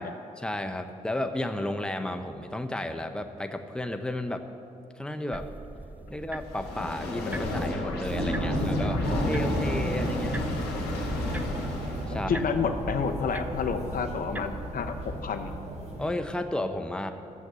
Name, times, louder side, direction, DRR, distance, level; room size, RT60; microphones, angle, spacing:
voice 1, 0.0-4.4 5.0-5.5 6.1-10.4 12.1-12.4 16.0-17.1, left 1 dB, 5° left, 7 dB, 0.9 m, -33 dB
sound 1, 5.3-15.2, right 2 dB, 10° right, 0.6 m, -42 dB
sound 2, 6.4-12.2, left 2 dB, 85° left, 2.0 m, -33 dB
sound 3, 8.1-16.1, right 1 dB, 40° right, 2.2 m, -33 dB
voice 2, 9.1-9.8 12.3-14.9 15.2-15.5, left 5 dB, 60° left, 8 dB, 0.9 m, -30 dB
12.0 x 7.7 x 7.0 m, 2.7 s
supercardioid pair, 50°, 16 cm